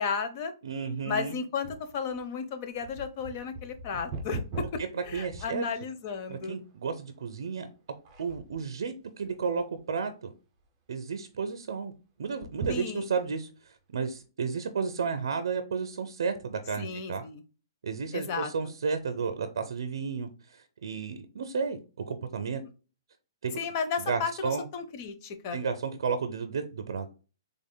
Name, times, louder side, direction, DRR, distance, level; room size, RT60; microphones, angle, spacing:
voice 1, 0.0-0.5 1.1-6.6 12.7-13.1 16.8-17.4 18.1-18.5 23.6-25.6, left 5 dB, 35° left, 0.6 m, -34 dB
voice 2, 0.6-1.3 4.9-5.7 6.3-7.7 8.2-10.3 10.9-11.9 12.2-17.2 17.8-21.8 22.1-22.6 23.4-23.5 24.1-24.7 25.5-27.1, right 5 dB, 70° right, 0.5 m, -32 dB
sound 1, 1.6-6.1 6.7-6.8 7.5-7.7 8.0-8.7 9.2-9.9 10.3-10.4 10.6-10.7 12.3-13.4 14.0-14.1, right 3 dB, 25° right, 0.8 m, -40 dB
3.5 x 3.5 x 2.2 m
hypercardioid pair, 165°, 2 cm